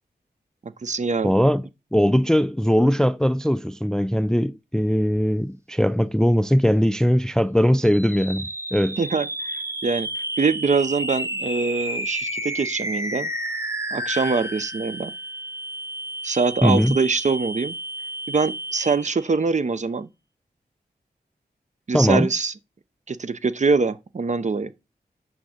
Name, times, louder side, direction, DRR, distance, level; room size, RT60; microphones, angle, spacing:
voice 1, 0.6-1.3 9.0-13.3 13.9-15.1 16.2-17.8 18.3-20.1 21.9-22.5 23.1-24.7, right 4 dB, 45° right, 0.7 m, -24 dB
voice 2, 1.2-1.6 1.9-9.0 16.6-17.0 21.9-22.3, equal, 5° left, 0.3 m, -20 dB
sound 1, 7.8-19.3, right 1 dB, 15° right, 1.0 m, -31 dB
8.8 x 3.6 x 6.4 m
cardioid pair, 65°, 17 cm